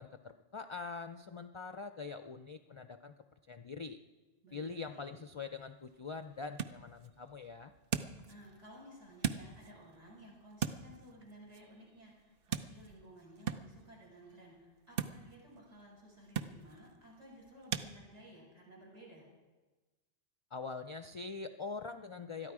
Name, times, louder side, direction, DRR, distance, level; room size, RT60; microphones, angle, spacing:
voice 1, 0.0-3.1 3.5-4.0 4.5-7.7 20.5-22.5, left 4 dB, 50° left, 9 dB, 0.3 m, -44 dB
voice 2, 4.4-5.2 8.3-19.3, equal, 85° right, -4 dB, 6.2 m, -56 dB
sound 1, 5.4-17.9, right 8 dB, 60° right, 0.8 m, -43 dB
21.0 x 13.0 x 4.8 m, 1.3 s
omnidirectional pair, 1.2 m